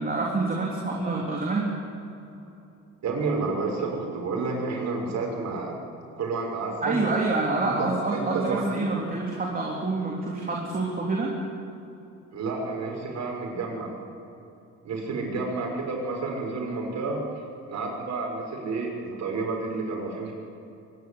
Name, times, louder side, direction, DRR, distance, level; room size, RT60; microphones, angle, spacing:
voice 1, 0.0-1.7 6.8-11.3, right 3 dB, 30° right, -2 dB, 3.5 m, -27 dB
voice 2, 3.0-5.7 6.2-7.0 7.8-8.8 12.3-13.9 14.8-17.2 17.7-20.3, right 3 dB, 65° right, 0 dB, 6.3 m, -30 dB
24.0 x 11.5 x 9.9 m, 2.9 s
cardioid pair, 90°, 30 cm